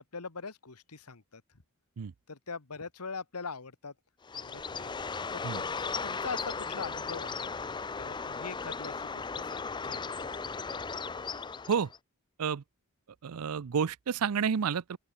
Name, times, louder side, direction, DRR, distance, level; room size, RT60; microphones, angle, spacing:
voice 1, 0.0-1.4 2.3-3.9 4.3-4.9 5.3-5.7 6.0-7.6 8.0-10.4, left 4 dB, 90° left, 1.5 m, -42 dB
Bird, 4.2-12.0, left 5 dB, 20° left, 0.5 m, -36 dB
voice 2, 13.2-15.0, right 7 dB, 80° right, 0.5 m, -30 dB
open air
head